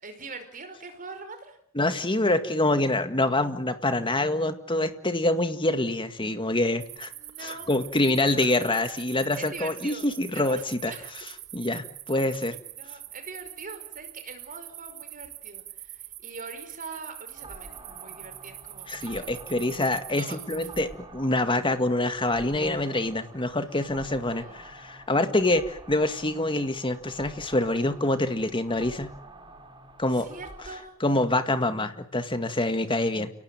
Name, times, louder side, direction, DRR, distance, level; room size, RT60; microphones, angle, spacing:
voice 1, 0.0-1.6 7.1-7.7 8.2-8.5 9.4-10.1 10.3-11.2 12.8-19.2 20.2-20.7 24.3-24.6 30.2-30.9, right 4 dB, 40° right, 7 dB, 5.2 m, -42 dB
voice 2, 1.7-7.1 7.4-10.9 11.5-12.6 18.9-29.1 30.0-30.3 31.0-33.3, left 2 dB, 25° left, 9 dB, 2.0 m, -26 dB
sound 1, 6.8-20.8, right 15 dB, 60° right, 2.2 m, -44 dB
sound 2, 17.3-30.8, right 2 dB, 20° right, 4.6 m, -48 dB
29.5 x 18.0 x 9.2 m, 0.69 s
head